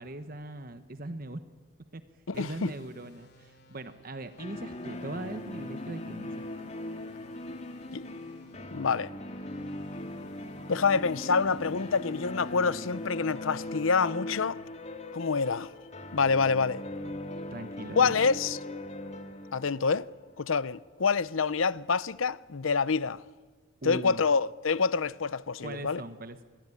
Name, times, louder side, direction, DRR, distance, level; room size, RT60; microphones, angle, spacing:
voice 1, 0.0-1.4 1.9-2.0 2.3-6.4 17.5-18.2 23.8-24.2 25.6-26.4, right 1 dB, 45° right, 1.2 m, -40 dB
voice 2, 2.3-2.7 7.9-8.0 8.7-9.1 10.7-14.6 15.1-15.7 16.1-16.8 17.9-18.6 19.5-20.1 20.4-23.2 23.8-26.0, left 5 dB, 85° left, 0.7 m, -27 dB
sound 1, 2.3-13.7, equal, 55° left, 2.7 m, -58 dB
sound 2, 4.4-21.1, left 1 dB, 35° left, 2.1 m, -40 dB
26.5 x 21.0 x 9.8 m
head